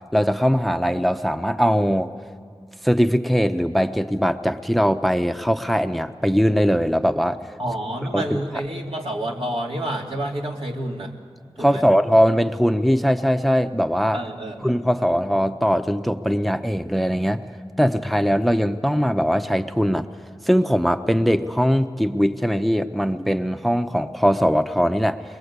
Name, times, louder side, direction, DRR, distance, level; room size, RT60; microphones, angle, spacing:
voice 1, 0.1-2.1 2.8-7.4 8.1-8.4 11.6-14.2 14.6-17.5 17.8-20.1 20.4-25.2, equal, ahead, 9 dB, 0.7 m, -20 dB
voice 2, 7.6-11.1 11.6-11.8 14.1-14.8, right 1 dB, 75° right, -1 dB, 2.7 m, -29 dB
21.5 x 21.5 x 8.2 m, 2.1 s
wide cardioid pair, 45°, 10 cm